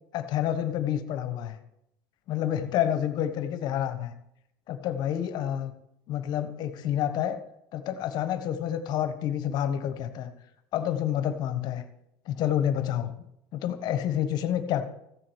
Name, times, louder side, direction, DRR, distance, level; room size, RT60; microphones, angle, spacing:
voice 1, 0.1-1.6 2.3-4.1 4.7-5.7 6.1-7.4 7.7-10.3 10.7-11.8 12.3-13.2 13.5-14.9, left 10 dB, 45° left, 11 dB, 1.4 m, -28 dB
15.0 x 7.6 x 8.2 m, 0.80 s
cardioid pair, 160°, 10 cm